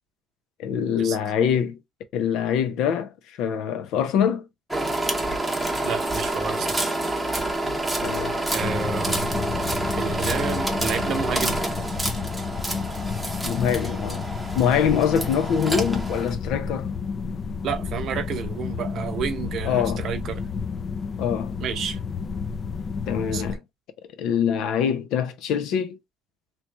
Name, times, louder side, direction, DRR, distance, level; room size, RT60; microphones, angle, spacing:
voice 1, 0.6-1.8 2.1-3.1 3.4-4.4 7.7-8.4 13.4-14.2 14.5-16.9 19.6-20.0 21.2-21.6 23.1-23.6 24.2-26.0, left 8 dB, 85° left, 0.6 m, -24 dB
sound 1, 4.7-16.3, right 1 dB, 5° right, 0.7 m, -28 dB
voice 2, 5.8-6.9 8.5-9.3 10.0-11.6 17.6-20.5 21.6-22.0 23.3-23.4, right 7 dB, 55° right, 0.8 m, -30 dB
sound 2, 8.6-23.6, left 5 dB, 35° left, 0.4 m, -31 dB
3.1 x 2.8 x 3.3 m
cardioid pair, 145°, 0 cm